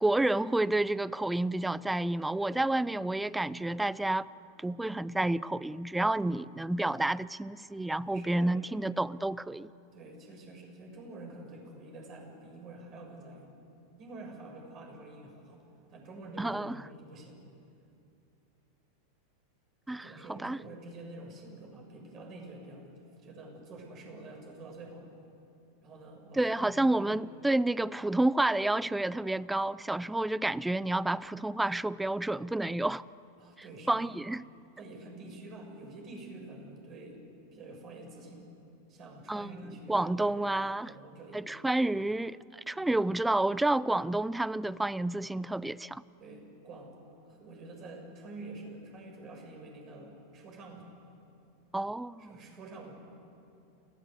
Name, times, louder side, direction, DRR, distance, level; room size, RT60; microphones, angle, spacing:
voice 1, 0.0-4.3 4.6-9.7 16.4-16.8 19.9-20.6 26.4-33.0 33.9-34.5 39.3-39.6 39.9-40.9 41.3-46.0 51.7-52.2, right 2 dB, 5° right, 0.5 m, -30 dB
voice 2, 2.4-2.7 6.1-6.2 8.1-8.8 9.9-13.5 14.0-15.6 15.9-17.5 19.9-22.9 23.2-25.1 25.8-27.1 33.4-34.1 34.8-37.2 37.5-38.5 38.9-40.5 40.8-41.4 42.7-43.0 46.2-47.0 47.3-50.9 52.2-52.9, right 2 dB, 35° right, 7.0 m, -47 dB
28.5 x 17.5 x 8.3 m
figure-of-eight pair, 90°, 0 cm